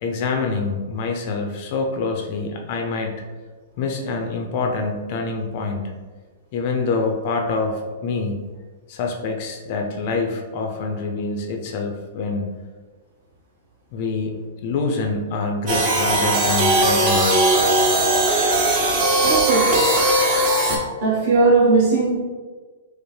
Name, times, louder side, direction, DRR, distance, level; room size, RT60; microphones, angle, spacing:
voice 1, 0.0-3.2 3.8-5.9 6.5-8.4 8.9-12.5 13.9-17.4, left 4 dB, 40° left, 3 dB, 0.4 m, -26 dB
sound 1, 15.7-20.8, right 1 dB, 30° right, 0.7 m, -18 dB
voice 2, 19.2-19.9 21.0-22.2, right 3 dB, 45° right, -6 dB, 1.5 m, -18 dB
5.0 x 2.0 x 3.2 m, 1.4 s
hypercardioid pair, 165°, 0 cm